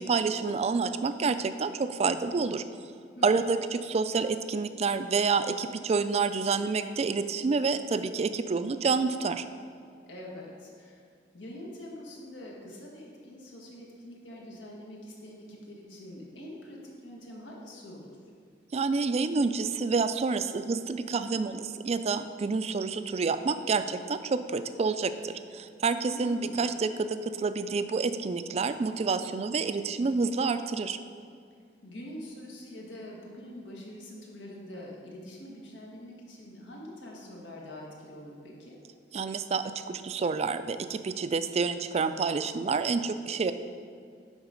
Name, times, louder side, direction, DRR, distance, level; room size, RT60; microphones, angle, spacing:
voice 1, 0.0-2.6 3.2-9.4 18.7-31.0 39.1-43.5, right 4 dB, 35° right, 11 dB, 0.3 m, -28 dB
voice 2, 10.1-11.0 11.3-18.2 26.1-26.6 31.8-38.8, left 1 dB, 90° left, -2 dB, 1.6 m, -44 dB
10.5 x 4.0 x 5.2 m, 2.2 s
head